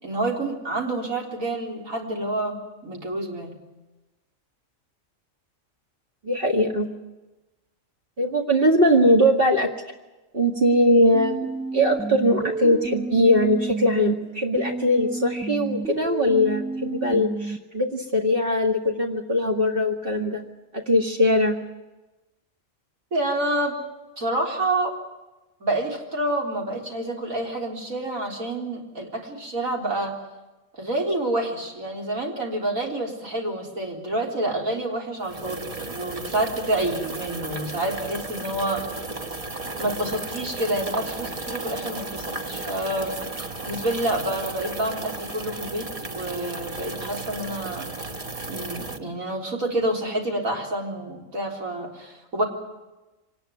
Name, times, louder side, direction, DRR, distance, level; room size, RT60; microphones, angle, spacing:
voice 1, 0.0-2.6 2.8-3.5 23.1-23.8 24.2-24.9 25.6-30.1 30.8-38.8 39.8-43.1 43.6-47.9 48.5-52.4, right 1 dB, 90° right, -1 dB, 4.4 m, -28 dB
voice 2, 6.2-6.9 8.2-9.7 10.3-11.4 11.7-20.4 20.7-21.6, equal, 45° right, 1 dB, 2.2 m, -21 dB
sound 1, 11.1-14.1 14.6-17.6, right 3 dB, 5° right, 0.7 m, -31 dB
sound 2, 35.2-49.0, right 3 dB, 30° right, 1.2 m, -34 dB
24.5 x 19.5 x 9.4 m, 1.1 s
omnidirectional pair, 1.4 m